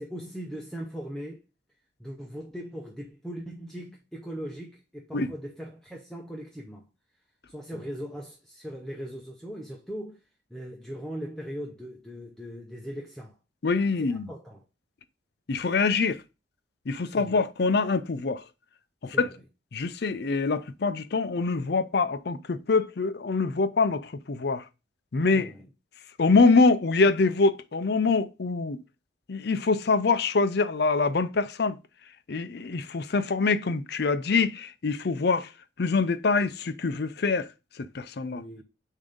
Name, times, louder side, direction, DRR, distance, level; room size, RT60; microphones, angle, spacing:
voice 1, 0.0-1.4 2.0-6.8 7.5-10.2 10.5-13.4 14.0-14.6 17.1-17.4 19.1-19.3 25.3-25.7 38.3-38.6, equal, ahead, 0.7 m, -39 dB
voice 2, 13.6-14.3 15.5-16.2 16.9-18.4 19.0-19.3 19.7-24.6 25.1-25.5 26.2-28.8 29.3-31.8 32.3-35.5 35.8-37.5 37.8-38.4, left 4 dB, 55° left, 0.5 m, -24 dB
7.0 x 2.8 x 5.0 m
head